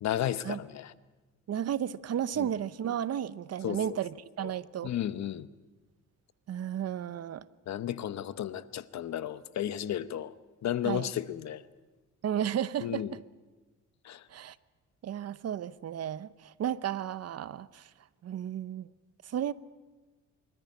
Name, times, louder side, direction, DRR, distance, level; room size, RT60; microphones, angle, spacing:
voice 1, 0.0-0.9 2.4-2.5 3.6-3.8 4.4-4.5 4.8-5.5 7.7-10.3 10.6-11.6 12.8-13.1 14.0-14.2, left 11 dB, 65° left, 1.0 m, -33 dB
voice 2, 1.5-4.9 6.5-7.4 10.8-11.1 12.2-13.2 14.3-14.6 15.0-17.9 18.2-18.9 19.2-19.5, right 10 dB, 55° right, 0.8 m, -33 dB
26.0 x 14.0 x 9.5 m
cardioid pair, 90°, 30 cm